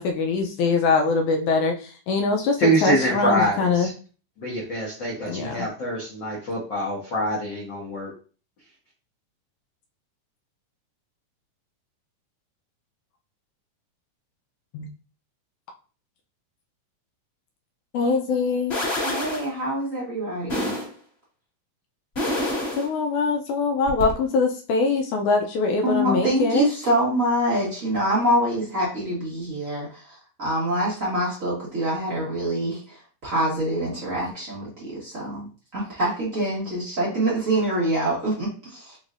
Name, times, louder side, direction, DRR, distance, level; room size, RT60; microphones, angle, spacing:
voice 1, 0.0-3.9 5.3-5.7 14.7-14.9 17.9-18.8 22.8-26.7, left 4 dB, 80° left, 3 dB, 1.9 m, -23 dB
voice 2, 2.6-3.9 4.4-8.1, equal, 65° left, -5 dB, 1.1 m, -25 dB
sound 1, 18.7-19.5 20.5-20.9 22.2-22.9 23.9-24.1, left 1 dB, 30° left, 1.2 m, -27 dB
voice 3, 19.0-20.7 25.8-35.5 35.7-39.0, right 1 dB, 55° right, -6 dB, 0.8 m, -25 dB
5.2 x 3.2 x 2.5 m, 0.38 s
omnidirectional pair, 3.8 m